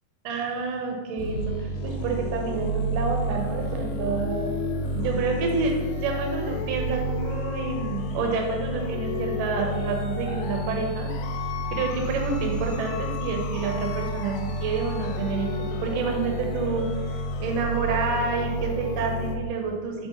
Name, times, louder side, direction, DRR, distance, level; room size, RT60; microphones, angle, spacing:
voice 1, 0.2-4.5 4.9-11.1 11.7-20.1, right 4 dB, 70° right, 1 dB, 2.2 m, -29 dB
sound 1, 1.2-19.4, equal, 80° left, 2.0 m, -30 dB
7.0 x 2.5 x 5.5 m, 1.4 s
omnidirectional pair, 4.2 m